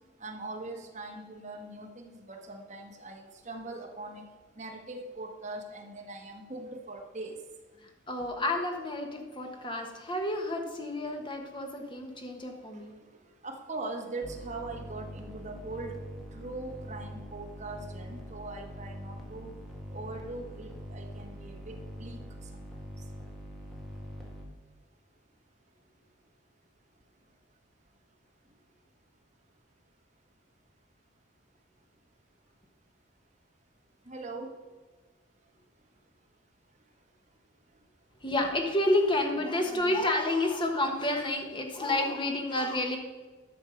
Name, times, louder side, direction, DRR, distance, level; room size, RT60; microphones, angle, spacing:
voice 1, 0.2-4.2 4.6-7.4 13.4-16.0 16.3-19.5 19.9-22.6 34.0-34.5, right 2 dB, 35° right, 1 dB, 1.5 m, -41 dB
voice 2, 7.8-12.9 38.2-43.0, left 1 dB, 25° left, 3 dB, 1.3 m, -30 dB
sound 1, 14.2-24.5, equal, ahead, 1.5 m, -44 dB
11.0 x 6.3 x 5.2 m, 1.3 s
head